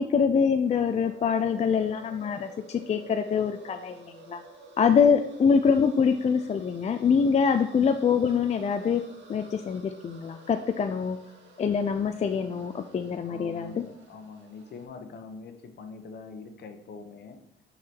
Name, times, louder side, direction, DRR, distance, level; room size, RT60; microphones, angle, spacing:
voice 1, 0.0-4.4 4.8-9.0 9.3-11.2 11.6-13.8, left 6 dB, 35° left, 7 dB, 0.4 m, -24 dB
sound 1, 0.6-14.9, right 2 dB, 70° right, 1.8 m, -51 dB
voice 2, 13.2-17.4, left 4 dB, 60° left, 6 dB, 0.9 m, -44 dB
6.0 x 3.9 x 4.5 m, 0.83 s
cardioid pair, 90°, 20 cm